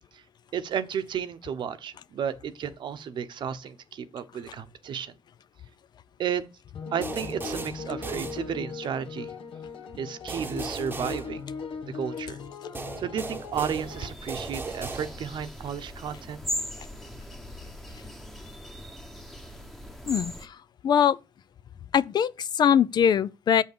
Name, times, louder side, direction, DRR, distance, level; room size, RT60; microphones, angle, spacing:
voice 1, 0.5-5.1 6.2-6.4 6.9-9.3 10.0-11.4 11.9-12.4 13.0-16.4, right 8 dB, 60° right, 1.0 m, -33 dB
sound 1, 6.7-14.1, left 5 dB, 75° left, 1.4 m, -39 dB
sound 2, 7.0-8.9 10.3-12.0 12.7-15.5, right 3 dB, 20° right, 1.0 m, -38 dB
sound 3, 13.5-20.5, equal, ahead, 1.1 m, -39 dB
voice 2, 20.1-20.6 20.8-21.2 21.9-23.6, left 8 dB, 50° left, 0.5 m, -22 dB
7.2 x 5.6 x 6.9 m
cardioid pair, 105°, 9 cm